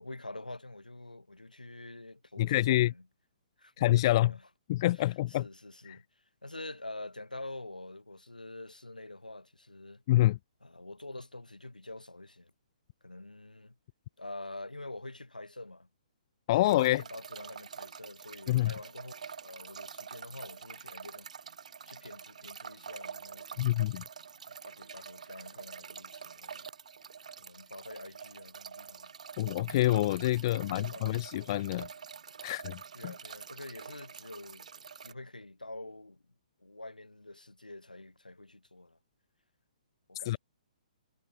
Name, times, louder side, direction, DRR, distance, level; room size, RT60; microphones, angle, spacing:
voice 1, 0.0-3.1 3.6-4.5 4.9-6.0 6.4-10.0 10.6-12.5 13.0-13.8 14.2-15.9 16.5-21.3 21.9-23.9 24.5-26.7 27.4-29.1 30.4-31.2 32.9-34.7 35.0-36.2 36.6-39.0 40.1-40.4, left 2 dB, 85° left, 7.1 m, -46 dB
voice 2, 2.4-2.9 3.8-4.3 4.7-5.4 5.9-6.0 10.1-10.4 16.5-17.0 18.5-18.7 23.6-24.0 29.4-31.9 32.4-33.1 40.3-40.4, left 15 dB, 35° left, 0.7 m, -27 dB
sound 1, 16.6-35.1, right 6 dB, 60° right, 4.7 m, -46 dB
figure-of-eight pair, 125°, 4 cm